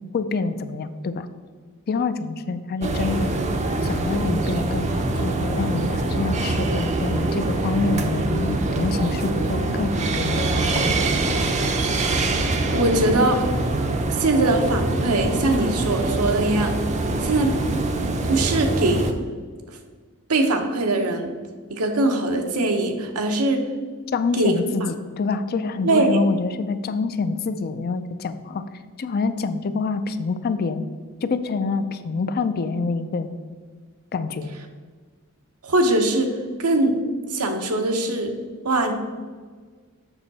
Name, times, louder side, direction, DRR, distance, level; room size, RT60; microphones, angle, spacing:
voice 1, 0.1-1.3 1.9-3.3 3.8-10.5 10.8-11.0 24.1-28.6 29.0-30.9 31.2-33.3 34.1-34.5, left 4 dB, 45° left, 11 dB, 0.4 m, -26 dB
sound 1, 2.8-19.1, right 2 dB, 30° right, 0.6 m, -24 dB
voice 2, 12.7-13.5 14.1-16.8 17.2-17.5 18.3-19.1 20.3-21.3 21.7-23.7 24.3-24.9 25.8-26.2 35.6-37.0 37.3-38.3 38.6-38.9, right 2 dB, 80° right, 5 dB, 0.9 m, -21 dB
7.2 x 5.6 x 4.0 m, 1.5 s
head